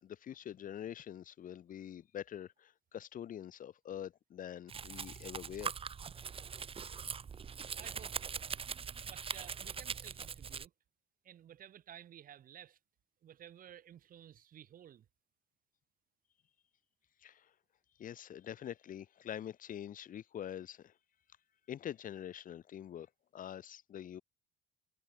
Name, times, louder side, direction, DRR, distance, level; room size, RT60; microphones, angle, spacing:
voice 1, 0.0-5.7 17.2-17.5 18.0-20.9 21.7-23.1 23.3-24.2, left 10 dB, 55° left, 2.5 m, -45 dB
Domestic sounds home sounds, 4.7-10.7, right 6 dB, 35° right, 1.5 m, -42 dB
voice 2, 7.7-8.5 9.0-10.7 11.2-12.8 13.2-15.1, right 10 dB, 55° right, 6.3 m, -54 dB
cardioid pair, 110°, 17 cm